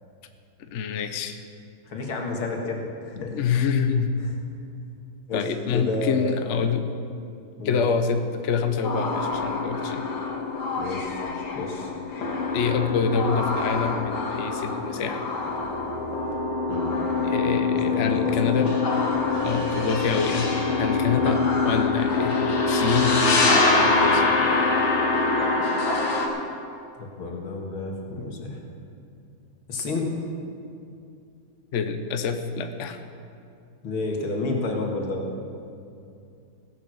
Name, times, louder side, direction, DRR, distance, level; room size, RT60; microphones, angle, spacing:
voice 1, 0.7-1.4 3.1-4.2 5.3-6.9 7.6-10.1 12.5-15.2 17.2-18.7 19.4-24.2 31.7-33.0, left 5 dB, 50° left, 7 dB, 0.9 m, -26 dB
voice 2, 1.9-3.4 4.2-4.3 5.3-5.4 5.7-6.4 7.6-7.8 10.8-11.2 11.5-11.9 16.7-16.9 17.8-18.4 21.1-21.3 27.0-28.6 29.7-30.1 33.8-35.2, left 2 dB, 85° left, 1 dB, 2.7 m, -30 dB
sound 1, 8.8-26.3, left 3 dB, 70° left, 2.5 m, -24 dB
16.5 x 11.0 x 6.4 m, 2.6 s
omnidirectional pair, 2.2 m